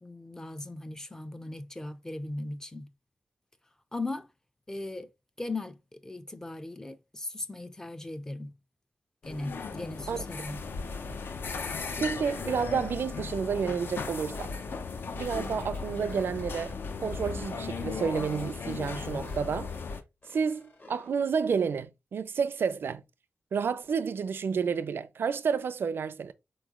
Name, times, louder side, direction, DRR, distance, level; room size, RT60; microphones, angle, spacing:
voice 1, 0.0-2.9 3.9-4.3 4.7-5.1 5.4-8.5 9.2-10.6, left 2 dB, 15° left, 0.4 m, -38 dB
sound 1, 9.2-20.0, left 4 dB, 70° left, 0.6 m, -36 dB
voice 2, 12.0-14.6 15.1-19.7 20.3-23.0 23.5-26.3, right 6 dB, 75° right, 0.4 m, -30 dB
sound 2, 15.2-16.7 17.0-18.0 18.2-19.8 20.2-21.1, left 2 dB, 50° left, 1.6 m, -55 dB
4.3 x 3.1 x 3.6 m
wide cardioid pair, 160°, 4 cm